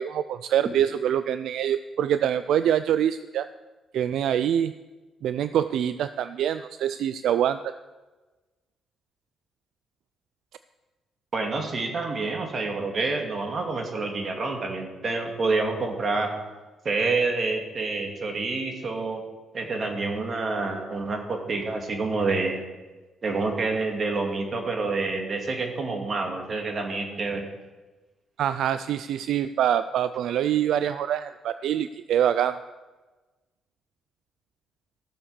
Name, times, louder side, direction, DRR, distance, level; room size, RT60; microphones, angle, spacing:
voice 1, 0.0-3.5 3.9-4.7 5.2-7.7 28.4-32.6, right 10 dB, 75° right, 13 dB, 0.3 m, -25 dB
voice 2, 11.3-16.3 16.8-19.2 19.5-22.6 23.2-27.5, right 3 dB, 45° right, 3 dB, 2.3 m, -28 dB
14.0 x 7.2 x 6.9 m, 1.2 s
cardioid pair, 90°, 0 cm